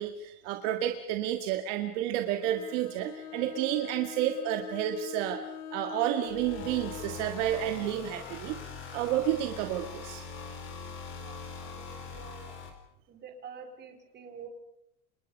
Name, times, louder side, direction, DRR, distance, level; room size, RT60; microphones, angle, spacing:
voice 1, 0.0-5.4 5.7-8.6 8.9-10.2, right 11 dB, 55° right, 5 dB, 2.1 m, -30 dB
Bowed string instrument, 2.4-7.3, left 8 dB, 80° left, 3.1 m, -43 dB
sound 1, 6.3-12.7, left 5 dB, 25° left, 4.6 m, -42 dB
voice 2, 11.1-12.5 13.1-14.5, right 6 dB, 25° right, 4 dB, 4.5 m, -48 dB
29.5 x 27.0 x 5.4 m, 0.78 s
supercardioid pair, 165°, 44 cm